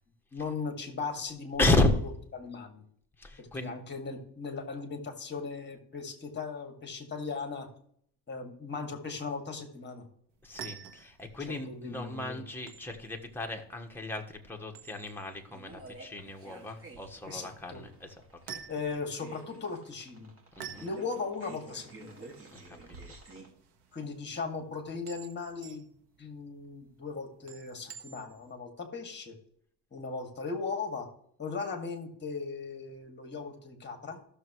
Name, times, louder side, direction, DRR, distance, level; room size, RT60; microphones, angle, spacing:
voice 1, 0.3-1.6 2.3-2.8 3.4-7.7 8.3-10.1 11.7-12.5 17.3-17.8 18.7-20.3 20.8-22.2 23.9-25.9 26.2-29.4 29.9-31.1 31.4-34.2, left 4 dB, 25° left, 5 dB, 2.2 m, -38 dB
voice 2, 1.6-1.9 3.2-3.7 10.4-18.2 18.5-18.6 20.5-20.9 22.5-22.8, left 2 dB, 5° left, 2 dB, 1.4 m, -32 dB
sound 1, 10.3-28.5, right 7 dB, 70° right, 1.4 m, -51 dB
sound 2, 15.1-23.5, right 2 dB, 30° right, 2.1 m, -51 dB
15.0 x 6.7 x 3.1 m, 0.65 s
cardioid pair, 115°, 43 cm